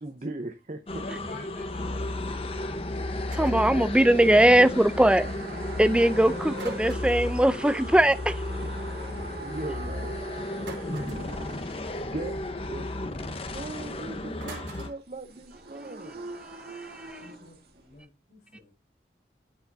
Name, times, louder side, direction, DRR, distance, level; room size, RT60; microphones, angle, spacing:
voice 1, 0.0-1.0 8.6-8.7 9.0-11.0 11.5-12.9 13.4-16.4, right 2 dB, 40° right, 0.8 m, -40 dB
sound 1, 0.9-14.9, left 1 dB, 30° left, 0.9 m, -34 dB
voice 2, 1.0-3.0 5.7-6.1 17.2-18.7, left 3 dB, 55° left, 5.1 m, -48 dB
sound 2, 1.1-18.0, right 2 dB, 60° right, 2.2 m, -44 dB
voice 3, 3.3-5.3 5.8-8.4 16.7-17.2, right 1 dB, 5° right, 0.4 m, -21 dB
sound 3, 3.3-3.8 6.5-7.4 10.6-11.3 14.4-15.0, right 3 dB, 85° right, 3.8 m, -42 dB
13.0 x 4.8 x 2.7 m
head